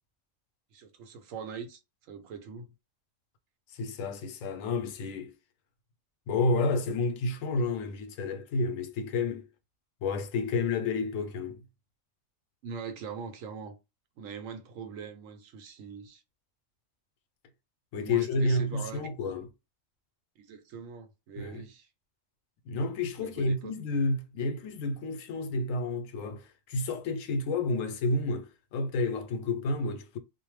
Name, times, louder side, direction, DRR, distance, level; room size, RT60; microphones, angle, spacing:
voice 1, 0.7-2.7 12.6-13.7 14.2-16.2 18.0-19.0 20.4-21.9 23.2-23.7, right 6 dB, 85° right, 1.0 m, -42 dB
voice 2, 3.7-5.3 6.3-9.5 10.0-11.6 17.9-19.5 21.4-21.6 22.7-30.2, left 3 dB, 85° left, 1.0 m, -30 dB
2.5 x 2.0 x 3.1 m
omnidirectional pair, 1.3 m